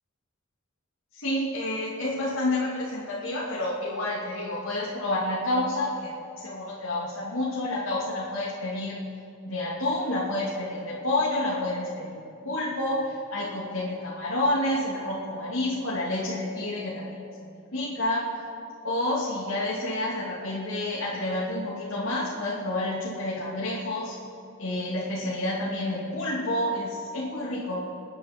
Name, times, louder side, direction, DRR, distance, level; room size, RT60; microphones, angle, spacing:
voice 1, 1.1-9.0 9.4-17.3 17.7-18.2 18.8-24.2 24.6-27.8, left 1 dB, 80° left, -7 dB, 2.6 m, -29 dB
28.0 x 9.9 x 4.4 m, 2.6 s
head